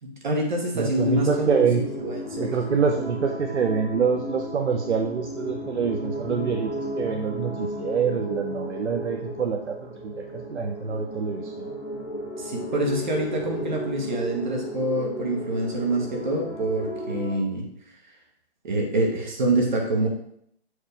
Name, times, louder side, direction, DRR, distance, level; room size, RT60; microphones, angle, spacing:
voice 1, 0.0-2.5 12.4-17.6 18.6-20.1, right 1 dB, 45° right, 1 dB, 1.5 m, -26 dB
voice 2, 0.7-1.8 2.4-11.7, right 6 dB, 80° right, 3 dB, 0.8 m, -26 dB
sound 1, 0.9-17.4, equal, 30° left, 2.0 m, -34 dB
6.6 x 4.9 x 3.4 m, 0.71 s
hypercardioid pair, 165°, 34 cm